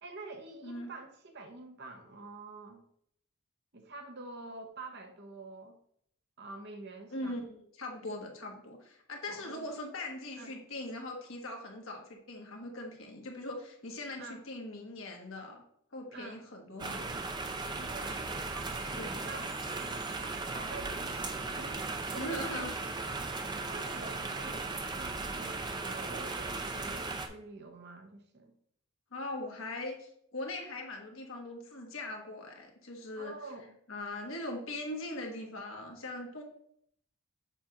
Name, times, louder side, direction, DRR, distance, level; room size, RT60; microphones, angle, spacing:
voice 1, 0.0-2.9 3.7-5.8 6.4-7.4 9.3-9.7 10.4-10.5 14.2-14.4 16.1-16.4 17.8-18.2 18.5-18.7 19.1-22.7 23.7-28.5 33.2-33.8, right 3 dB, 50° right, 5 dB, 0.8 m, -47 dB
voice 2, 7.1-15.6 15.9-17.2 19.0-19.2 22.2-22.7 29.1-33.3 33.9-36.4, left 1 dB, 65° left, 1 dB, 1.3 m, -41 dB
sound 1, 16.8-27.3, right 3 dB, 20° right, 0.4 m, -37 dB
7.1 x 2.5 x 5.6 m, 0.68 s
head